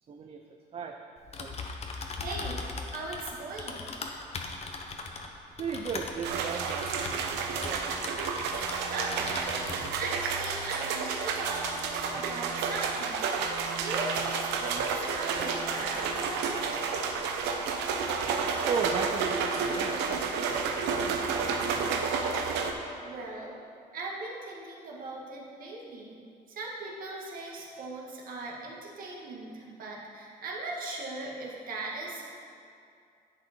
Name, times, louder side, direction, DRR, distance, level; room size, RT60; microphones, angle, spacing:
voice 1, 0.1-0.4 0.7-1.0 1.4-1.5 5.6-8.0 15.7-15.9 18.0-22.7, right 6 dB, 35° right, 4 dB, 0.6 m, -37 dB
Typing, 1.2-8.8 9.1-9.9, left 4 dB, 40° left, 1.1 m, -39 dB
voice 2, 2.2-3.9 5.1-5.3 8.9-13.2 13.5-16.6 22.6-23.5 23.9-26.2 26.5-32.2, right 2 dB, 55° right, -2 dB, 2.1 m, -39 dB
sound 1, 6.2-22.7, right 5 dB, 90° right, 0.9 m, -31 dB
10.5 x 7.9 x 4.4 m, 2.4 s
cardioid pair, 110°, 17 cm